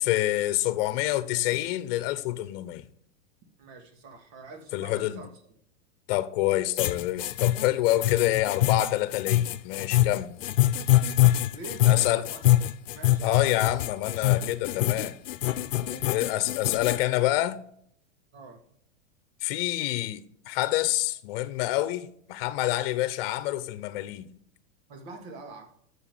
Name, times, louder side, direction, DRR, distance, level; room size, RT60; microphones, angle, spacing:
voice 1, 0.0-2.9 4.7-5.3 6.1-10.3 11.8-12.3 13.2-15.1 16.1-17.6 19.4-24.3, left 15 dB, 50° left, 0.9 m, -27 dB
voice 2, 3.6-5.3 11.3-12.5 12.9-13.7 14.9-15.1 15.9-16.1 18.3-18.6 24.9-25.7, right 3 dB, 55° right, 2.4 m, -45 dB
sound 1, 6.8-17.0, left 14 dB, 85° left, 0.7 m, -24 dB
7.2 x 7.1 x 7.0 m
supercardioid pair, 145°, 38 cm